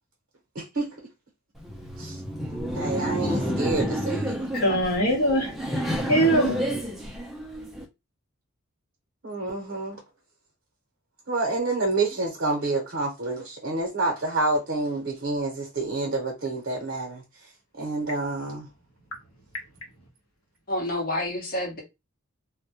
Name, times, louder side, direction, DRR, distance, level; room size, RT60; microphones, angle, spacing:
voice 1, 0.5-0.9 2.0-2.2 2.7-4.4 9.2-10.0 11.3-17.2 17.8-18.7, right 2 dB, 50° right, 0.7 m, -28 dB
Laughter, 1.6-7.8, equal, ahead, 0.3 m, -29 dB
voice 2, 4.5-6.6, right 1 dB, 80° left, 0.8 m, -23 dB
voice 3, 20.7-21.8, left 1 dB, 40° left, 0.8 m, -28 dB
2.1 x 2.0 x 2.8 m
head